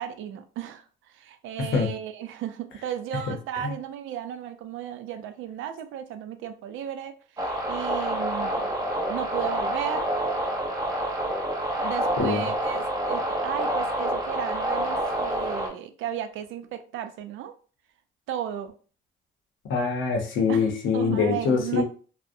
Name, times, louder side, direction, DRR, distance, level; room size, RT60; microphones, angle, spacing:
voice 1, 0.0-8.7 9.1-10.1 11.8-17.5 18.3-18.7 20.5-20.7 20.9-21.8, right 10 dB, 80° right, 9 dB, 0.4 m, -34 dB
voice 2, 1.6-1.9 3.6-3.7 12.2-12.4 19.7-21.8, left 5 dB, 80° left, 3 dB, 0.7 m, -24 dB
sound 1, 7.4-15.7, right 1 dB, 20° right, 0.7 m, -28 dB
2.5 x 2.0 x 2.5 m, 0.39 s
cardioid pair, 90°, 20 cm